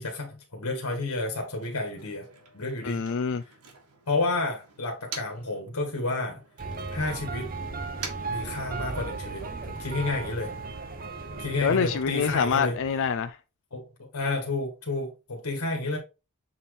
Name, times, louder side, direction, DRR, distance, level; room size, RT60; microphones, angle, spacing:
voice 1, 0.0-2.3 2.5-3.0 4.1-6.4 6.9-7.5 8.3-10.5 11.3-12.7 13.7-16.0, left 2 dB, 85° left, 1.6 m, -30 dB
Motor vehicle (road), 1.1-5.6 5.9-9.2, right 5 dB, 90° right, 1.8 m, -46 dB
voice 2, 2.8-3.4 11.6-13.4, left 6 dB, 55° left, 0.4 m, -26 dB
sound 1, 6.6-13.3, right 3 dB, 40° right, 0.8 m, -36 dB
7.1 x 4.3 x 3.3 m
head